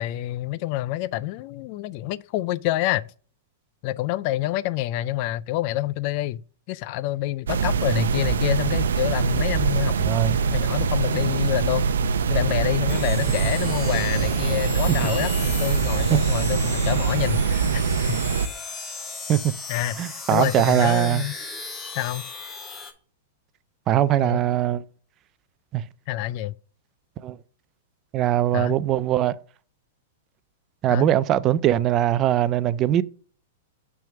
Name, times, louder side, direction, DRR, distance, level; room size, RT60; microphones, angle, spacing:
voice 1, 0.0-3.1 3.8-6.4 6.7-10.0 10.5-11.9 12.3-17.8 19.7-21.3 22.0-22.3 24.2-24.5 26.1-26.5 28.5-28.8 30.9-31.1, left 15 dB, 50° left, 0.3 m, -27 dB
sound 1, 7.5-18.5, right 5 dB, 85° right, 0.5 m, -23 dB
voice 2, 10.0-10.4 16.1-16.2 19.3-19.5 20.0-21.2 23.9-24.8 25.7-25.8 27.2-27.4 28.1-29.3 30.8-33.0, right 12 dB, 35° right, 0.4 m, -21 dB
sound 2, 12.9-22.9, left 4 dB, 20° left, 1.2 m, -37 dB
6.1 x 3.5 x 5.9 m
hypercardioid pair, 125°, 0 cm